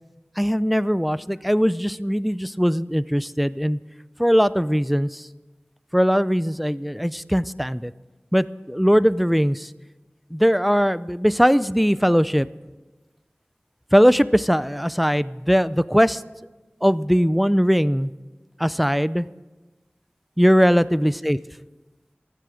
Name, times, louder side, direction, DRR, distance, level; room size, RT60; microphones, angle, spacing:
voice 1, 0.4-3.8 4.2-5.2 5.9-7.9 8.3-9.7 10.3-12.5 13.9-16.2 16.8-18.1 18.6-19.3 20.4-21.4, equal, ahead, 16 dB, 0.5 m, -20 dB
15.0 x 10.0 x 7.7 m, 1.2 s
wide cardioid pair, 50°, 4 cm